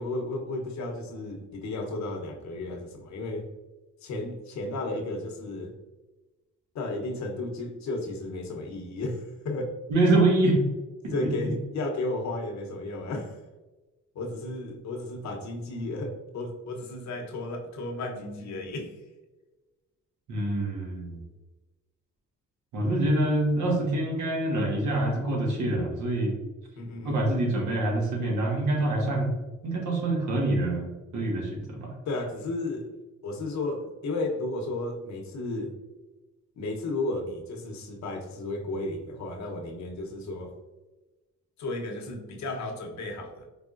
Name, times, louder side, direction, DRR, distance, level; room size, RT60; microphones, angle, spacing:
voice 1, 0.0-3.5 4.0-5.7 6.7-9.8 11.1-13.4 14.1-18.9 26.8-27.3 32.1-32.9 33.2-35.7 36.6-40.5 41.6-43.5, left 2 dB, 65° left, 2 dB, 0.9 m, -33 dB
voice 2, 9.9-10.6 11.0-11.5 20.3-21.2 22.7-26.4 27.0-29.3 29.6-31.9, right 2 dB, 75° right, -1 dB, 1.5 m, -26 dB
4.8 x 3.5 x 2.5 m, 1.1 s
cardioid pair, 90°, 30 cm